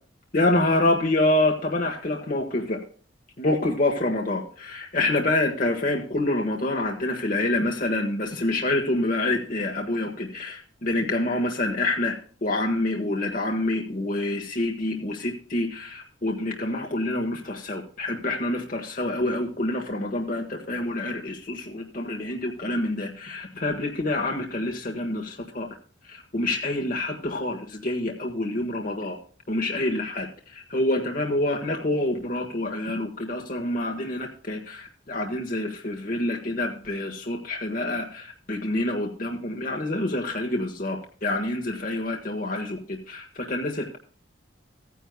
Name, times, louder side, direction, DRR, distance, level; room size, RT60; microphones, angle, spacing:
voice 1, 0.3-2.8 3.4-25.7 26.1-29.2 29.5-44.0, left 2 dB, 45° left, 1 dB, 1.4 m, -27 dB
15.0 x 10.0 x 2.2 m, 0.42 s
head